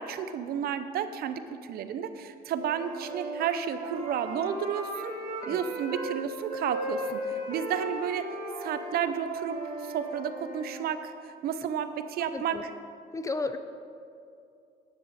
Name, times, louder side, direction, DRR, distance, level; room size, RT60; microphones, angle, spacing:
voice 1, 0.0-5.1 5.5-8.3 8.6-12.6, right 8 dB, 65° right, 11 dB, 0.6 m, -32 dB
Wind instrument woodwind instrument, 2.5-6.2 6.5-10.8, right 1 dB, 50° right, 2.6 m, -36 dB
voice 2, 12.2-12.6 13.1-13.6, left 3 dB, 20° left, 10 dB, 0.5 m, -34 dB
10.5 x 9.7 x 4.2 m, 2.5 s
cardioid pair, 110°, 17 cm